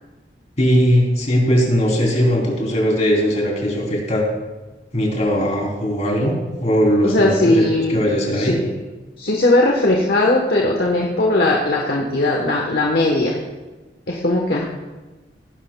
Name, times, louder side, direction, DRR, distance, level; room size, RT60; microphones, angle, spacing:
voice 1, 0.6-4.2 4.9-7.7 7.9-8.6, equal, 40° left, -2 dB, 3.0 m, -19 dB
voice 2, 7.0-8.0 8.3-8.7 9.2-13.4 14.1-14.7, left 2 dB, 60° left, -1 dB, 1.0 m, -18 dB
17.5 x 10.5 x 2.2 m, 1.2 s
head